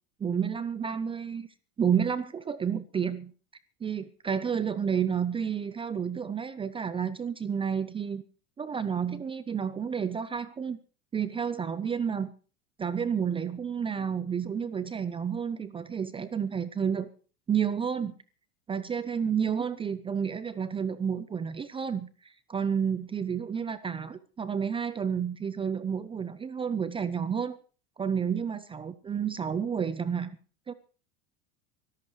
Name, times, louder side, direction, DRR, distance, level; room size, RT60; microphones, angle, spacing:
voice 1, 0.2-1.5 1.8-3.3 3.8-8.2 8.6-10.8 11.1-12.3 12.8-17.1 17.5-18.1 18.7-27.6 28.0-30.4 30.7-30.8, right 7 dB, 15° right, 14 dB, 0.6 m, -30 dB
24.5 x 14.0 x 3.2 m, 0.38 s
supercardioid pair, 120°, 30 cm